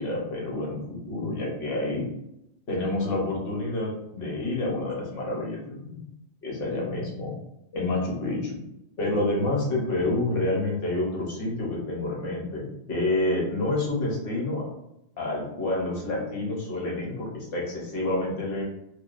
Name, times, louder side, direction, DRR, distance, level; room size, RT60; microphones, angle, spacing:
voice 1, 0.0-2.0 2.7-6.1 6.4-7.3 7.7-8.6 9.0-14.7 15.2-18.6, left 2 dB, 60° left, -3 dB, 1.0 m, -28 dB
2.3 x 2.3 x 2.4 m, 0.84 s
omnidirectional pair, 1.1 m